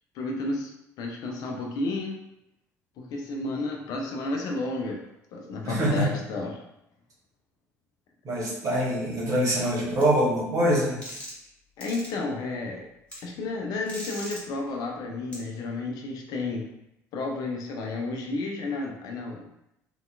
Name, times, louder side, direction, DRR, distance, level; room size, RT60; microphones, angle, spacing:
voice 1, 0.1-0.7 1.0-2.2 3.0-5.0 5.3-6.6 11.8-12.8 13.2-16.7 17.1-19.4, left 2 dB, 50° left, 0 dB, 0.4 m, -31 dB
voice 2, 5.6-6.1 8.2-11.0, right 1 dB, 40° right, -5 dB, 1.0 m, -24 dB
sound 1, 10.0-10.1 11.0-11.5 11.8-12.1 13.1-13.2 13.9-14.4 15.3-15.4, equal, 15° left, 1.1 m, -39 dB
2.7 x 2.2 x 2.3 m, 0.84 s
figure-of-eight pair, 55°, 8 cm